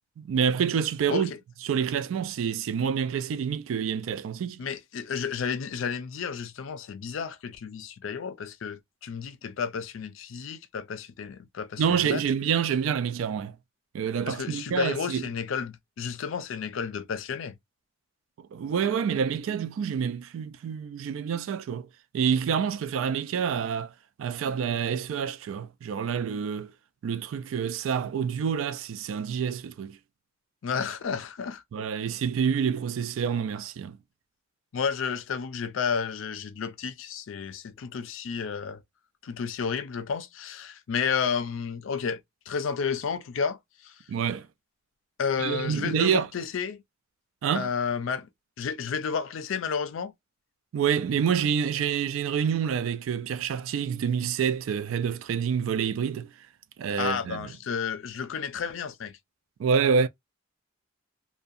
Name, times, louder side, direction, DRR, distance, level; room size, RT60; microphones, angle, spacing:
voice 1, 0.2-1.3 1.6-4.6 11.8-13.6 13.9-15.3 18.4-21.9 22.1-23.9 24.2-26.7 27.0-30.0 31.7-34.0 44.1-44.5 45.4-46.3 47.4-47.7 50.7-56.3 56.8-57.5 59.6-60.1, right 7 dB, 85° right, 0.3 m, -27 dB
voice 2, 4.6-12.2 14.3-17.6 30.6-31.9 34.7-38.8 39.2-42.2 42.5-43.9 45.2-46.8 47.5-48.3 48.6-50.1 57.0-59.2, left 6 dB, 75° left, 0.4 m, -31 dB
2.6 x 2.1 x 2.3 m
head